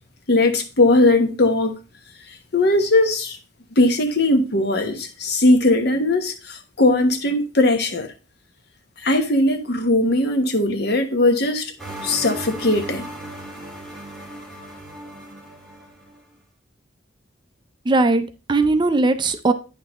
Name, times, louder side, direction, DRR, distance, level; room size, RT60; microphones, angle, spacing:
voice 1, 0.3-1.7 2.3-3.4 3.8-8.1 9.0-11.7 12.0-13.0, left 2 dB, 60° left, 1.0 m, -19 dB
sound 1, 11.8-16.2, right 1 dB, ahead, 2.0 m, -36 dB
voice 2, 17.9-19.5, right 3 dB, 25° right, 0.5 m, -19 dB
9.2 x 6.0 x 3.0 m
head